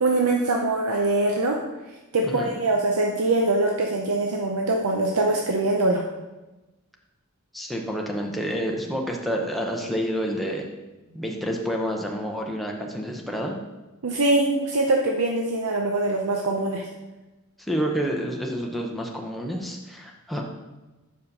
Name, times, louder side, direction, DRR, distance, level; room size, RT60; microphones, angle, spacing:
voice 1, 0.0-1.6 2.1-6.0 14.0-16.9, right 2 dB, 80° right, 1 dB, 0.7 m, -23 dB
voice 2, 7.5-10.7 11.1-13.5 17.7-20.4, equal, ahead, -1 dB, 0.8 m, -29 dB
5.5 x 4.8 x 6.5 m, 1.1 s
head